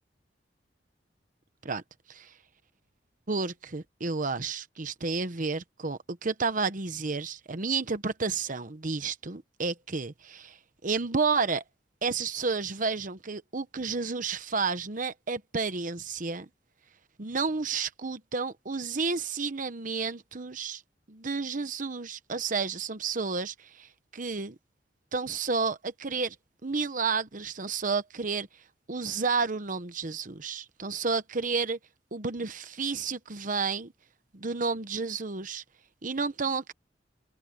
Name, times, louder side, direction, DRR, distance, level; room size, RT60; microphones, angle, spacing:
voice 1, 3.3-10.6 10.8-11.6 12.0-16.5 17.2-20.8 21.1-24.6 25.1-26.3 26.6-28.5 28.9-31.8 32.1-33.9 34.3-35.6 36.0-36.7, right 4 dB, 50° right, 1.0 m, -31 dB
head